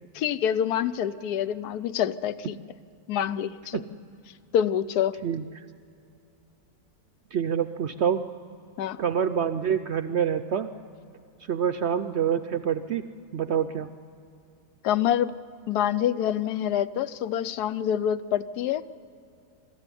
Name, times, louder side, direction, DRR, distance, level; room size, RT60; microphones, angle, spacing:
voice 1, 0.1-2.6 3.1-3.8 4.5-5.2 8.8-9.0 14.8-15.3 15.7-18.8, left 10 dB, 80° left, 14 dB, 1.2 m, -26 dB
voice 2, 7.3-8.2 9.0-10.7 11.5-13.1 13.3-13.9, right 8 dB, 65° right, 9 dB, 0.7 m, -26 dB
22.5 x 13.5 x 9.8 m, 2.6 s
omnidirectional pair, 1.7 m